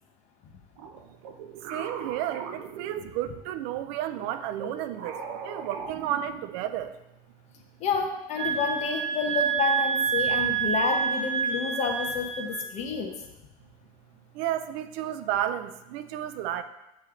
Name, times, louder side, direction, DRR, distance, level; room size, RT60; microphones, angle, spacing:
sound 1, 0.8-3.5 4.1-6.8, right 6 dB, 85° right, 0.8 m, -40 dB
voice 1, 1.7-5.2 5.4-6.9 14.3-16.6, right 11 dB, 65° right, 10 dB, 0.4 m, -32 dB
voice 2, 7.8-13.1, left 5 dB, 40° left, 2 dB, 0.9 m, -29 dB
sound 2, 8.3-12.7, right 6 dB, 40° right, 2.2 m, -28 dB
8.3 x 3.2 x 3.7 m, 0.95 s
cardioid pair, 165°, 17 cm